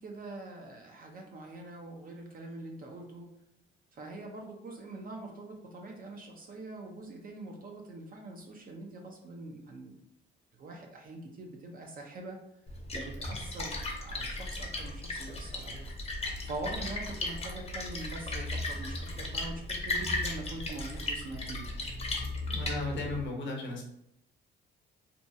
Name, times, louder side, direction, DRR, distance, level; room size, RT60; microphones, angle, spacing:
voice 1, 0.0-3.3 3.9-10.0 10.6-12.4 12.9-15.9 16.4-21.6, right 2 dB, 45° right, 2 dB, 0.6 m, -43 dB
Splash splatter, 12.7-23.3, left 2 dB, 30° left, 0.6 m, -36 dB
voice 2, 22.5-23.8, left 2 dB, 70° left, 0 dB, 0.8 m, -35 dB
2.7 x 2.3 x 2.6 m, 0.81 s
cardioid pair, 90°, 20 cm